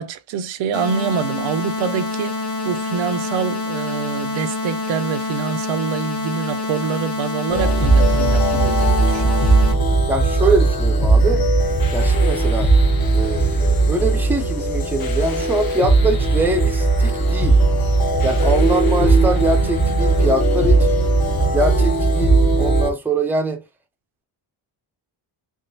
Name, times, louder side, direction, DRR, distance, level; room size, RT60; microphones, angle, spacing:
voice 1, 0.0-9.5, right 7 dB, 85° right, 0.6 m, -26 dB
sound 1, 0.7-9.7, left 3 dB, 30° left, 1.2 m, -26 dB
sound 2, 7.5-22.9, right 2 dB, 50° left, 1.0 m, -17 dB
voice 2, 10.1-11.5 11.9-12.7 13.1-17.6 18.2-20.9 21.5-23.6, right 2 dB, 5° right, 0.5 m, -23 dB
3.7 x 3.1 x 2.7 m
cardioid pair, 110°, 45 cm